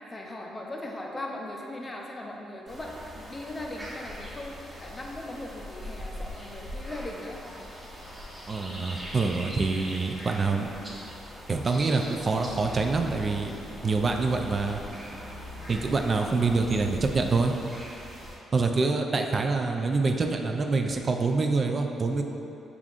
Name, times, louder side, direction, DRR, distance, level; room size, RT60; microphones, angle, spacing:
voice 1, 0.1-7.4, left 1 dB, 25° left, -1 dB, 0.5 m, -39 dB
sound 1, 2.7-18.4, equal, 10° right, 1.4 m, -42 dB
voice 2, 8.5-10.7 11.5-13.5 13.8-14.8 15.7-17.5 18.5-22.2, right 3 dB, 40° right, 4 dB, 0.3 m, -26 dB
sound 2, 12.4-17.5, left 1 dB, 85° right, 0.7 m, -43 dB
6.9 x 2.5 x 2.4 m, 2.9 s
cardioid pair, 90°, 0 cm